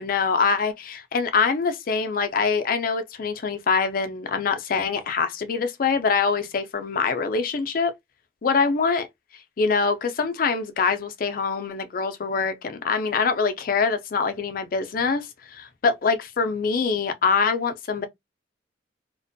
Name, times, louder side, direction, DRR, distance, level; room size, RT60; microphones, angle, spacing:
voice 1, 0.0-7.9 8.4-9.1 9.6-18.1, left 5 dB, 50° left, 0.4 m, -24 dB
2.5 x 2.1 x 2.5 m
head